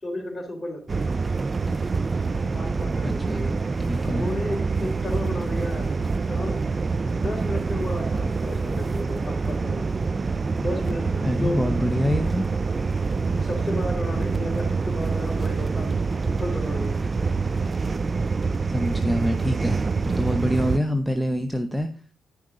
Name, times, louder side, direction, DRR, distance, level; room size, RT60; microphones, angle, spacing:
voice 1, 0.0-1.1 2.4-3.5 4.0-5.9 6.3-6.5 7.2-9.9 10.5-11.7 13.4-16.0 16.3-17.0, left 1 dB, 20° left, 1 dB, 3.9 m, -33 dB
sound 1, 0.9-20.8, right 4 dB, 35° right, 0.4 m, -26 dB
voice 2, 3.0-3.5 3.9-4.3 11.2-12.5 18.7-21.9, equal, 5° right, 7 dB, 0.8 m, -26 dB
10.5 x 5.9 x 3.8 m, 0.39 s
cardioid pair, 70°, 0 cm